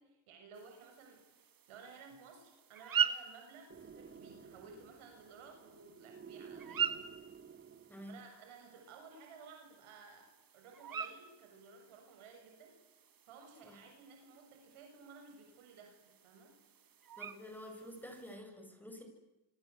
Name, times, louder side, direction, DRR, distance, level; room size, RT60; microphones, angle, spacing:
voice 1, 0.0-7.1 8.0-10.3 10.5-12.8 13.3-16.6, right 5 dB, 80° right, 3 dB, 7.0 m, -56 dB
sound 1, 0.5-18.4, right 8 dB, 45° right, 2.2 m, -43 dB
sound 2, 3.7-8.3, right 6 dB, 25° right, 1.9 m, -54 dB
voice 2, 17.2-19.0, equal, 5° left, 4 dB, 7.9 m, -49 dB
26.5 x 25.5 x 8.2 m, 1.0 s
supercardioid pair, 80°, 49 cm